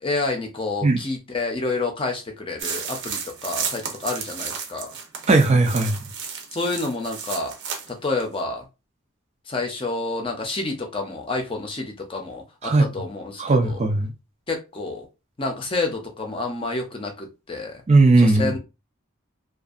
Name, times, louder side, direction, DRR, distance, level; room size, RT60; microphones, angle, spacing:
voice 1, 0.0-4.9 6.5-7.5 7.9-8.7 9.5-13.8 14.5-15.1 15.4-17.8 18.2-18.6, left 3 dB, 25° left, 0.6 m, -29 dB
sound 1, 2.6-7.9 8.2-8.3, right 6 dB, 65° right, 0.7 m, -33 dB
voice 2, 5.3-6.0 12.6-12.9 13.4-14.1 17.9-18.5, right 3 dB, 35° right, 0.4 m, -17 dB
2.6 x 2.3 x 2.4 m
head